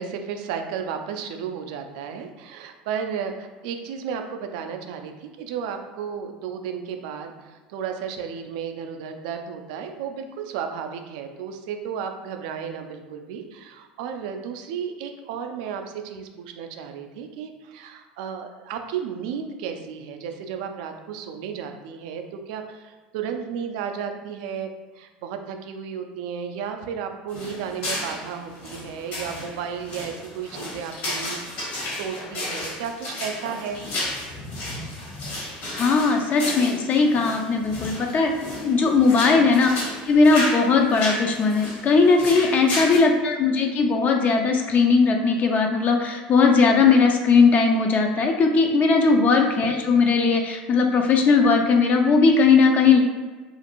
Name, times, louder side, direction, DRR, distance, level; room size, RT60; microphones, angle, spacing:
voice 1, 0.0-24.7 25.0-33.8 39.2-39.5 42.6-42.9 49.0-49.3, right 7 dB, 70° right, 5 dB, 0.3 m, -33 dB
sound 1, 27.3-43.0, left 1 dB, 65° left, 1.3 m, -33 dB
voice 2, 35.7-38.3 38.6-39.7 40.0-53.0, left 4 dB, 40° left, 3 dB, 0.3 m, -18 dB
2.5 x 2.5 x 2.9 m, 1.3 s
hypercardioid pair, 80°, 4 cm